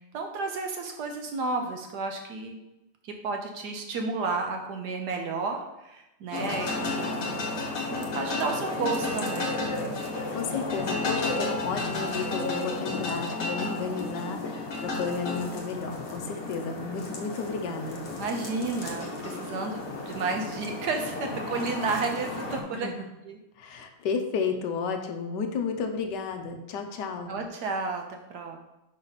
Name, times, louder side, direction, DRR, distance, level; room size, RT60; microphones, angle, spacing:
voice 1, 0.0-2.6 3.0-9.5 18.2-22.9 23.2-23.4 27.3-28.6, right 4 dB, 65° right, 3 dB, 1.0 m, -32 dB
sound 1, 6.3-22.6, left 2 dB, 50° left, 1.2 m, -33 dB
voice 2, 10.1-18.0 22.7-23.1 23.6-27.3, left 5 dB, 70° left, 6 dB, 1.1 m, -32 dB
5.7 x 5.3 x 4.0 m, 0.94 s
omnidirectional pair, 2.4 m